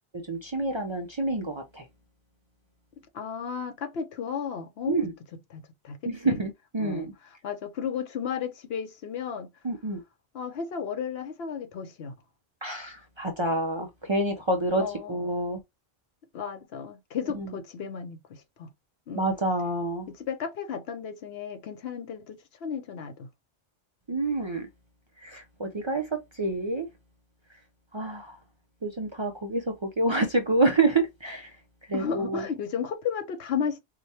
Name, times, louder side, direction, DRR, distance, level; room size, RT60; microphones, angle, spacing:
voice 1, 0.3-1.8 4.9-5.1 6.1-7.1 9.6-10.0 12.6-14.8 15.1-15.6 19.2-20.1 24.1-24.7 25.2-26.0 26.4-26.9 27.9-28.3 28.8-29.6 30.0-31.5 31.9-32.4, right 2 dB, 35° right, 0.4 m, -27 dB
voice 2, 3.1-5.0 5.3-6.4 6.8-9.5 10.3-12.1 14.8-15.2 16.3-18.7 19.1-19.3 20.1-23.3 31.9-33.8, left 7 dB, 75° left, 0.9 m, -34 dB
4.7 x 2.2 x 2.8 m
omnidirectional pair, 1.1 m